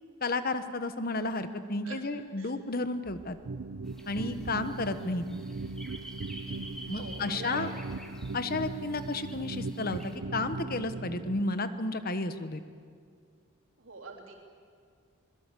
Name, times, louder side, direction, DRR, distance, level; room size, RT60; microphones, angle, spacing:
voice 1, 0.2-3.4 4.1-5.3 6.9-7.7 8.3-12.6, left 2 dB, 45° left, 11 dB, 1.2 m, -32 dB
sound 1, 3.0-8.1, equal, 30° right, 5.0 m, -55 dB
sound 2, 3.4-11.4, right 3 dB, 80° right, 0.7 m, -39 dB
sound 3, 3.9-10.2, equal, 5° left, 2.4 m, -49 dB
voice 2, 7.0-7.7 13.8-14.3, right 4 dB, 65° right, 0 dB, 3.8 m, -43 dB
25.5 x 21.5 x 8.5 m, 2.1 s
head